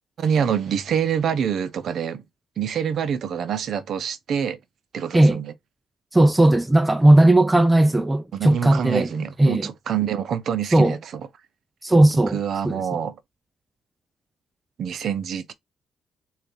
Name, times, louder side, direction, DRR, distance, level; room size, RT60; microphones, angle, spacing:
voice 1, 0.2-2.2 2.6-4.6 4.9-5.5 8.3-11.2 12.3-13.1 14.8-15.5, right 8 dB, 65° right, 0.6 m, -26 dB
voice 2, 6.1-9.1 9.4-9.7 10.7-11.0 11.8-12.8, right 1 dB, 10° right, 0.3 m, -17 dB
3.9 x 2.4 x 3.6 m
cardioid pair, 90°, 0 cm